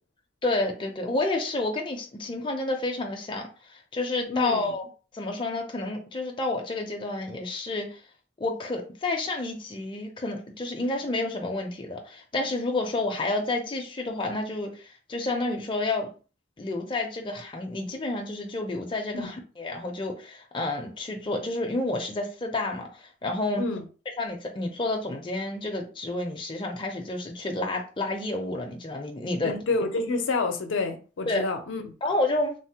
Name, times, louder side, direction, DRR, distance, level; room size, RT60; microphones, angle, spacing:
voice 1, 0.4-4.8 5.1-8.0 8.4-16.1 16.6-23.7 24.2-29.6 31.3-31.5 32.0-32.5, left 2 dB, 25° left, 0.4 m, -30 dB
voice 2, 4.3-4.7 19.1-19.3 23.6-23.8 29.4-31.8, left 3 dB, 85° left, 0.5 m, -28 dB
3.2 x 2.0 x 2.8 m
head